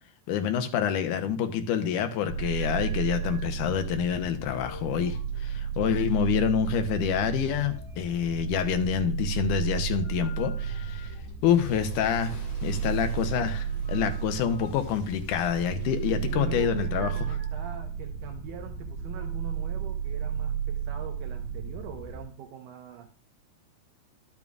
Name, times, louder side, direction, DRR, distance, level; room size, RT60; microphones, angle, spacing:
voice 1, 0.3-11.1 11.4-17.1, left 8 dB, 80° left, 8 dB, 2.2 m, -27 dB
Clock, 2.2-4.8 5.0-8.0 8.3-17.2, left 3 dB, 30° left, 2.6 m, -48 dB
sound 1, 2.3-22.2, right 7 dB, 30° right, 3.3 m, -33 dB
voice 2, 16.2-23.1, right 7 dB, 80° right, 4 dB, 2.2 m, -42 dB
12.0 x 7.2 x 2.4 m, 0.40 s
omnidirectional pair, 3.7 m